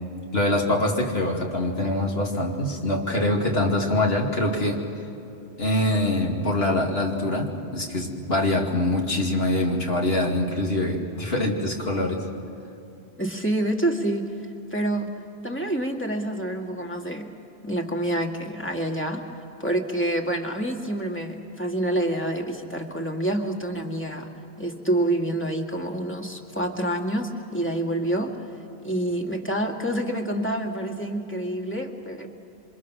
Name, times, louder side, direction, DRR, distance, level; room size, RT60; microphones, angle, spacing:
voice 1, 0.3-4.8 5.6-12.2, left 1 dB, 65° left, 1 dB, 2.8 m, -24 dB
voice 2, 13.2-14.3 14.7-15.1 15.4-17.3 17.6-24.3 24.6-28.3 28.8-32.3, right 1 dB, 10° left, 1 dB, 2.1 m, -27 dB
28.0 x 25.5 x 6.2 m, 2.9 s
omnidirectional pair, 1.1 m